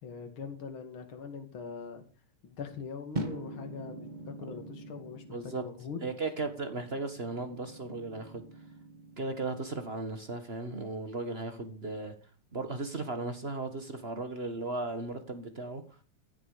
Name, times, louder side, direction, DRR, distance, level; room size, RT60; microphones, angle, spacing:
voice 1, 0.0-2.0 2.4-6.0, left 6 dB, 40° left, 2.8 m, -42 dB
sound 1, 3.1-9.4, right 1 dB, 60° right, 0.4 m, -43 dB
voice 2, 5.3-5.6 6.0-8.4 9.2-12.1 12.5-15.8, right 3 dB, 40° right, 0.9 m, -36 dB
16.0 x 12.0 x 5.0 m
omnidirectional pair, 3.7 m